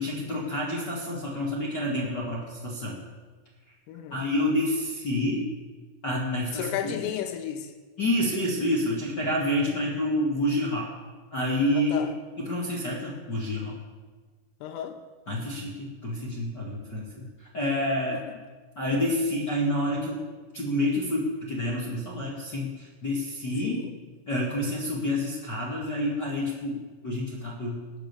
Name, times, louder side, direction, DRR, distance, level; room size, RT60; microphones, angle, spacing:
voice 1, 0.0-3.0 4.1-5.4 6.0-7.0 8.0-10.9 11.3-12.0 12.4-13.7 15.3-18.2 18.7-20.2 20.5-23.8 24.3-27.8, left 1 dB, 70° left, -5 dB, 1.0 m, -28 dB
voice 2, 3.9-4.2 6.5-7.7 11.7-12.1 14.6-15.0 18.1-18.4 23.6-23.9, left 10 dB, 85° left, 6 dB, 3.8 m, -33 dB
19.0 x 8.0 x 6.9 m, 1.4 s
omnidirectional pair, 5.8 m